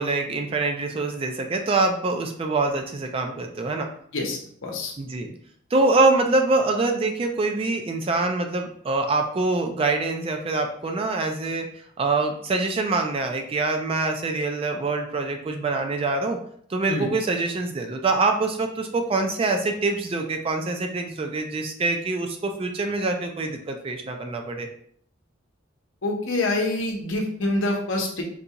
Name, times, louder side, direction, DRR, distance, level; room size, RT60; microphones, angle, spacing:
voice 1, 0.0-3.9 5.0-5.3 5.7-11.7 12.0-16.4 16.7-24.7, right 3 dB, 30° right, 4 dB, 0.3 m, -25 dB
voice 2, 4.1-4.9 16.9-17.1 26.0-28.2, left 2 dB, 70° left, 0 dB, 0.8 m, -26 dB
3.8 x 2.3 x 2.8 m, 0.62 s
head